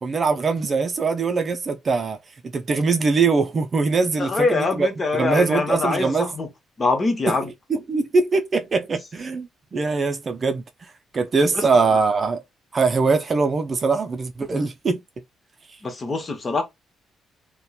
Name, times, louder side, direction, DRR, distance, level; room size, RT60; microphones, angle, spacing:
voice 1, 0.0-2.2 2.5-4.9 5.2-6.3 7.3-10.6 11.1-12.4 12.7-15.0, right 4 dB, 40° right, 0.4 m, -22 dB
voice 2, 4.2-6.5 6.8-7.5 11.5-11.9 14.4-14.6 15.8-16.6, left 3 dB, 35° left, 0.9 m, -24 dB
2.8 x 2.2 x 2.3 m
cardioid pair, 90°, 0 cm